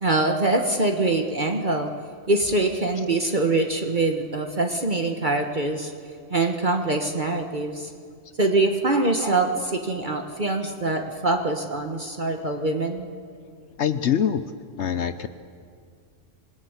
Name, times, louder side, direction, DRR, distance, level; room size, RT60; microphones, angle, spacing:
voice 1, 0.0-1.9 2.3-5.9 6.3-7.9 8.4-13.1, right 2 dB, 40° right, 4 dB, 1.5 m, -24 dB
voice 2, 13.8-14.4 14.8-15.3, left 8 dB, 65° left, 11 dB, 1.1 m, -23 dB
27.0 x 20.5 x 8.2 m, 2.2 s
omnidirectional pair, 1.3 m